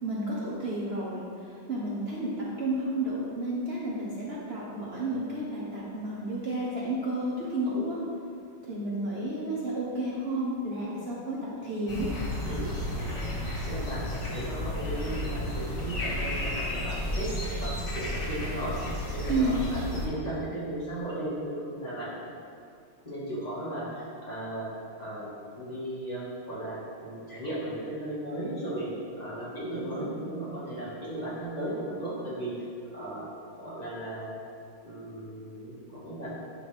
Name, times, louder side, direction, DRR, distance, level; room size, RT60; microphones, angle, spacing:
voice 1, 0.0-2.3 2.6-8.0 8.6-11.4 11.6-12.1 19.3-19.6, right 1 dB, 85° right, -6 dB, 0.5 m, -31 dB
sound 1, 11.9-20.1, left 1 dB, 40° left, 0.8 m, -32 dB
voice 2, 13.6-18.7 19.1-22.2 23.0-24.7 25.0-25.3 25.5-28.9 29.2-32.5 32.9-33.2 33.6-34.4 34.8-36.3, right 1 dB, 20° left, -9 dB, 1.6 m, -36 dB
10.5 x 4.1 x 3.3 m, 2.4 s
omnidirectional pair, 2.2 m